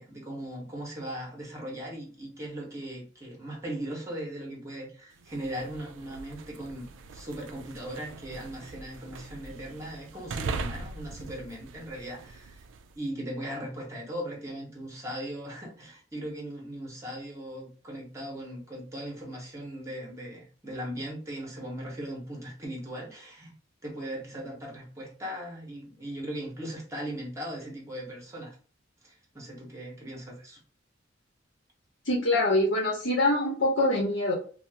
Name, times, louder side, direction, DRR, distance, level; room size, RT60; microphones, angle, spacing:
voice 1, 0.0-12.6 12.9-23.5 23.8-28.6 29.0-30.6, right 1 dB, 15° right, -2 dB, 0.7 m, -38 dB
sound 1, 5.2-13.0, right 4 dB, 85° right, 0.4 m, -41 dB
voice 2, 32.0-34.3, left 1 dB, 80° left, -2 dB, 0.8 m, -24 dB
2.8 x 2.0 x 3.2 m, 0.40 s
head